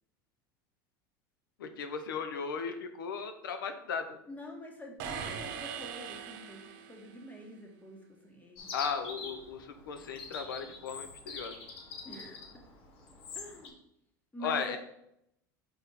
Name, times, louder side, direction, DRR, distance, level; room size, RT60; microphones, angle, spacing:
voice 1, 1.6-4.2 8.7-11.6 14.4-14.8, left 6 dB, 90° left, 8 dB, 0.8 m, -36 dB
voice 2, 4.3-8.7 12.0-12.4 13.3-13.7 14.3-14.8, equal, 15° left, 1 dB, 1.5 m, -46 dB
sound 1, 5.0-7.2, right 7 dB, 70° right, 0.8 m, -41 dB
Chirp tweet, 8.6-13.7, left 4 dB, 55° left, 1.4 m, -45 dB
5.2 x 4.3 x 4.1 m, 0.76 s
hypercardioid pair, 90°, 11 cm